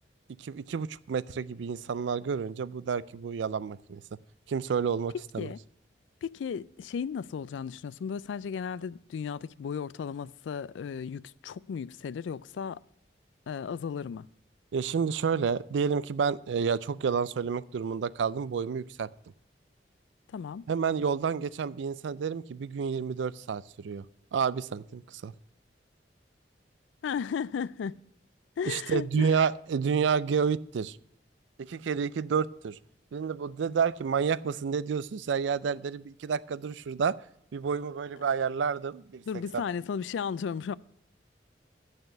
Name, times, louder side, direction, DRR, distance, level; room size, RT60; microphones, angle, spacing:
voice 1, 0.4-4.0 4.5-5.5 14.7-19.1 20.7-24.0 24.3-25.3 28.7-31.0 31.6-32.8 33.1-37.2 37.5-39.2 39.5-39.6, right 6 dB, 80° right, 0.4 m, -29 dB
voice 2, 6.2-12.8 13.5-14.3 20.3-20.6 27.0-28.0 28.6-29.4 39.3-40.7, left 6 dB, 85° left, 0.3 m, -35 dB
8.8 x 6.4 x 8.0 m
head